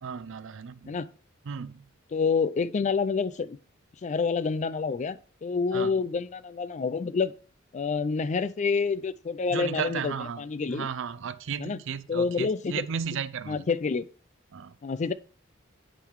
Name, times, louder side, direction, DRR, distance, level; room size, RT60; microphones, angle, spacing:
voice 1, 0.0-1.0 1.4-1.9 5.7-5.9 9.5-13.7 14.5-14.8, right 7 dB, 65° right, 0.5 m, -35 dB
voice 2, 2.1-3.6 4.0-7.3 7.7-10.9 11.6-11.8 12.1-12.7 13.5-14.1 14.8-15.1, left 5 dB, 35° left, 0.4 m, -28 dB
10.0 x 3.9 x 4.7 m
head